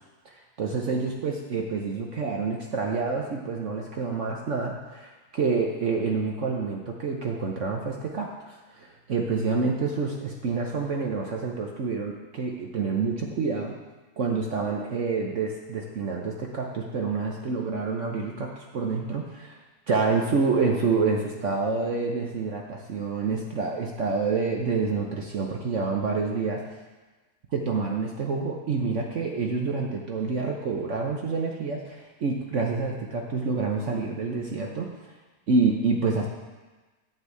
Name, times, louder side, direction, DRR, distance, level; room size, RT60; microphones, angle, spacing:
voice 1, 0.6-13.8 14.2-19.6 19.9-26.6 27.5-34.9 35.5-36.3, right 4 dB, 55° right, 0 dB, 1.1 m, -28 dB
11.5 x 4.6 x 8.3 m, 1.2 s
omnidirectional pair, 1.7 m